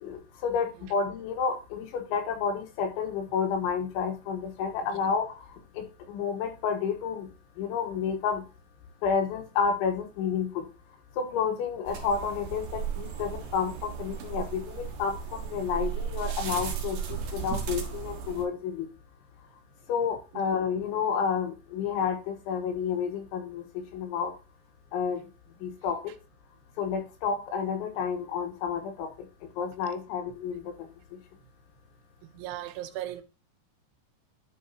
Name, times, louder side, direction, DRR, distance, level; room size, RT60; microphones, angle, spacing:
voice 1, 0.0-5.3 6.1-7.3 7.6-8.4 9.0-10.7 11.2-17.0 17.3-18.9 19.9-23.6 23.9-24.3 24.9-25.2 25.6-26.0 26.8-29.1 29.6-30.7, left 6 dB, 90° left, 3.7 m, -30 dB
sound 1, 11.8-18.4, right 7 dB, 65° right, 1.9 m, -35 dB
voice 2, 32.3-33.2, right 13 dB, 90° right, 3.1 m, -36 dB
10.0 x 5.8 x 2.8 m
omnidirectional pair, 5.3 m